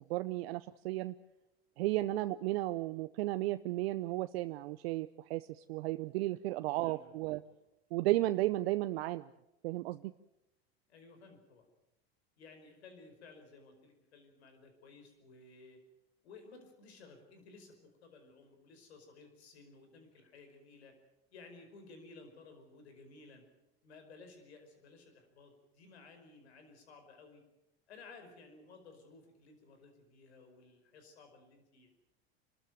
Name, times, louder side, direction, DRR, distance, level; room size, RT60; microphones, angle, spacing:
voice 1, 0.1-1.1 1.8-7.4 7.9-9.3 9.6-10.1, right 17 dB, 70° right, 12 dB, 0.7 m, -34 dB
voice 2, 6.6-7.6 7.9-8.0 10.9-11.7 12.4-15.8 16.2-20.9 21.3-23.4 23.8-27.4 27.9-31.9, left 3 dB, 85° left, 6 dB, 5.1 m, -56 dB
27.0 x 13.5 x 9.2 m, 0.91 s
hypercardioid pair, 90°, 32 cm